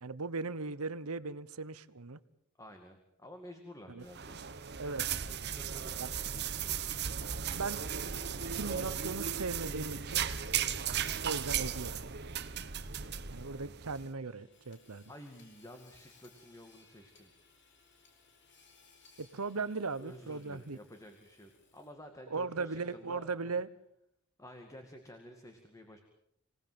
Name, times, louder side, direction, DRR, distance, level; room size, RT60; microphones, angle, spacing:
voice 1, 0.0-2.2 3.9-4.1 4.8-5.3 6.0-6.1 7.5-7.8 8.5-10.3 11.2-12.0 13.3-15.0 19.2-20.8 22.3-23.7, right 4 dB, 80° right, 16 dB, 1.1 m, -38 dB
voice 2, 2.6-4.4 5.3-6.2 15.1-17.3 20.0-23.5 24.4-26.0, equal, 15° left, 5 dB, 2.2 m, -51 dB
sound 1, 4.0-14.0, right 8 dB, 50° right, 1.1 m, -36 dB
Hammer / Sawing, 13.9-22.1, left 4 dB, 50° left, 4.3 m, -64 dB
26.0 x 18.5 x 7.7 m, 0.75 s
head